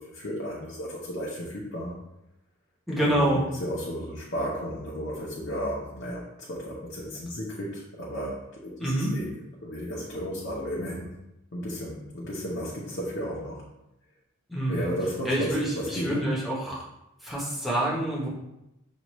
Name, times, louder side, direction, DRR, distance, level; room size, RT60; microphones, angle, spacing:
voice 1, 0.0-2.0 3.0-9.3 9.6-11.1 11.5-13.6 14.7-16.2, equal, 55° left, -5 dB, 0.7 m, -33 dB
voice 2, 2.9-3.4 8.8-9.1 14.5-14.9 15.3-16.8 17.2-18.3, right 1 dB, ahead, -6 dB, 0.9 m, -27 dB
6.2 x 2.5 x 3.0 m, 0.89 s
head